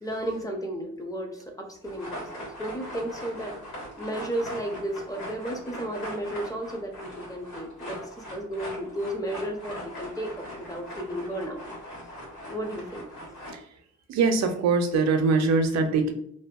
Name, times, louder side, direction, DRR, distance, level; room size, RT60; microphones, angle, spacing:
voice 1, 0.0-3.6 4.0-11.6 12.5-13.1, right 1 dB, 10° left, 2 dB, 0.5 m, -33 dB
sound 1, 1.8-13.5, equal, 90° left, 1.5 m, -40 dB
voice 2, 14.1-16.1, right 4 dB, 60° right, 6 dB, 0.5 m, -22 dB
2.6 x 2.2 x 2.2 m, 0.67 s
cardioid pair, 90°, 30 cm